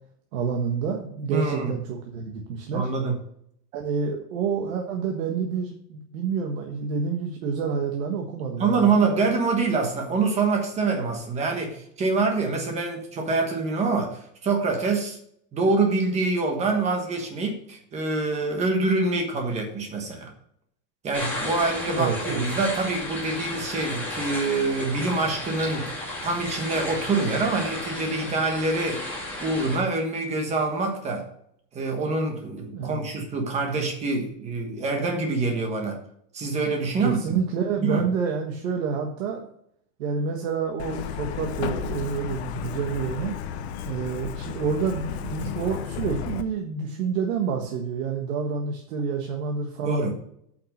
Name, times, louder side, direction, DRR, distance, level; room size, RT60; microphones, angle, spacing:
voice 1, 0.3-2.9 3.7-9.1 21.9-22.5 32.7-33.1 37.0-39.4 40.0-43.4 43.8-50.1, right 6 dB, 55° right, 1 dB, 1.6 m, -28 dB
voice 2, 1.3-1.8 2.7-3.1 8.6-15.2 15.5-20.3 21.0-29.0 29.4-31.3 31.7-36.0 36.3-37.4 37.8-38.0 49.8-50.1, right 3 dB, 15° right, 3 dB, 1.2 m, -25 dB
sound 1, 21.1-29.8, left 1 dB, 5° left, 2.6 m, -33 dB
Truck, 40.8-46.4, left 9 dB, 40° left, 0.8 m, -33 dB
8.7 x 5.8 x 6.5 m, 0.69 s
supercardioid pair, 175°, 48 cm